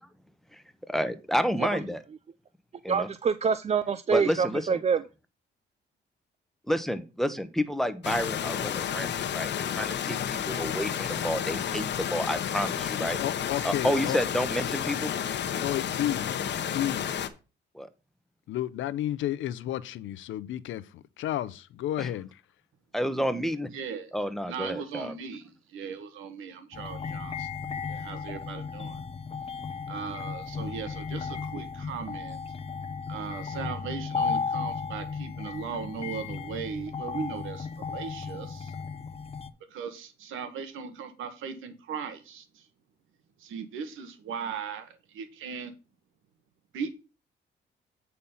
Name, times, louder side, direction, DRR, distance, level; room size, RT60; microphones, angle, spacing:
voice 1, 0.9-2.0 2.8-3.1 4.1-4.8 6.7-9.5 9.7-13.2 13.6-15.1 17.7-17.9 22.0-22.1 22.9-23.7 24.1-25.1, equal, ahead, 1.0 m, -30 dB
voice 2, 2.9-5.0, right 6 dB, 35° right, 0.4 m, -26 dB
sound 1, 8.0-17.3, left 9 dB, 60° left, 1.0 m, -31 dB
voice 3, 13.2-14.2 15.6-16.3 16.7-17.0 18.5-22.4, left 12 dB, 80° left, 0.6 m, -32 dB
voice 4, 23.7-24.1 24.5-27.5 27.9-29.0 29.9-32.4 33.1-38.7 39.7-42.6 43.4-45.7 46.7-46.9, right 6 dB, 85° right, 1.5 m, -38 dB
sound 2, 26.7-39.5, left 5 dB, 30° left, 0.8 m, -35 dB
8.6 x 4.3 x 5.6 m
cardioid pair, 90°, 20 cm